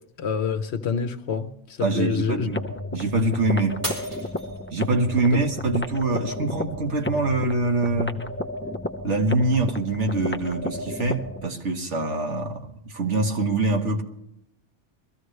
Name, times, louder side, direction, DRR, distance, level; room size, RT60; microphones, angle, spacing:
voice 1, 0.2-2.5, left 6 dB, 65° left, 1.1 m, -27 dB
voice 2, 1.8-2.6 2.9-3.9 4.7-8.2 9.0-14.0, right 2 dB, 75° right, 1.7 m, -24 dB
sound 1, 2.5-11.5, left 1 dB, 15° left, 0.6 m, -33 dB
Shatter, 3.8-5.1 5.6-6.1 6.6-6.7, right 1 dB, 25° right, 3.8 m, -34 dB
22.0 x 14.5 x 3.2 m
omnidirectional pair, 1.2 m